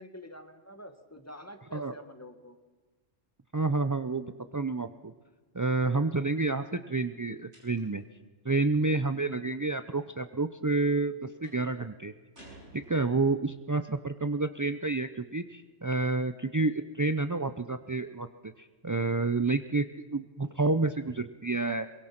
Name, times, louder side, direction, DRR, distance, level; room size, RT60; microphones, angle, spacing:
voice 1, 0.0-2.6, left 1 dB, 10° left, 8 dB, 1.6 m, -47 dB
voice 2, 3.5-5.1 5.5-8.0 8.4-12.1 12.7-21.9, right 3 dB, 30° right, 10 dB, 0.3 m, -29 dB
sound 1, 7.5-8.1 11.4-11.7 12.3-13.4, right 1 dB, 65° right, 6.3 m, -53 dB
23.5 x 22.0 x 5.9 m, 1.3 s
omnidirectional pair, 1.3 m